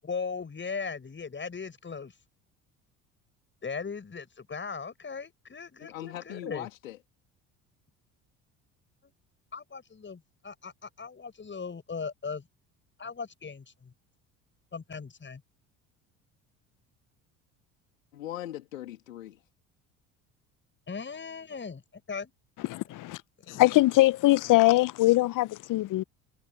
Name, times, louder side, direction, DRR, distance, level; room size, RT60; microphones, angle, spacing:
voice 1, 0.0-2.1 3.6-6.7 9.0-9.1 9.5-12.4 13.0-13.9 14.7-15.4 20.9-21.8 22.1-22.3 23.5-23.6, left 5 dB, 30° left, 8.0 m, -38 dB
voice 2, 5.8-7.0 18.1-19.4, left 13 dB, 90° left, 2.8 m, -40 dB
voice 3, 22.7-23.2 23.5-26.0, left 18 dB, 55° left, 0.9 m, -22 dB
hypercardioid pair, 65°, 39 cm